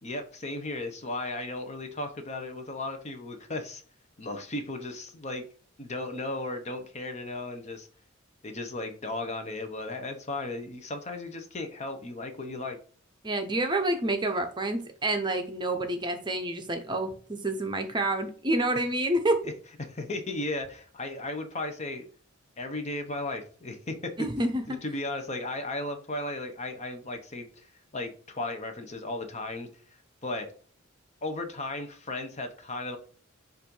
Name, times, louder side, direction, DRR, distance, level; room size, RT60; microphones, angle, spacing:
voice 1, 0.0-3.8 4.2-5.4 5.8-7.9 8.4-12.8 19.4-19.5 19.8-22.1 22.6-24.1 24.7-29.7 30.2-30.5 31.2-33.0, left 2 dB, 35° left, 6 dB, 0.9 m, -35 dB
voice 2, 13.2-19.4 24.2-24.8, right 1 dB, 20° right, 6 dB, 0.7 m, -28 dB
7.2 x 2.6 x 5.4 m, 0.43 s
head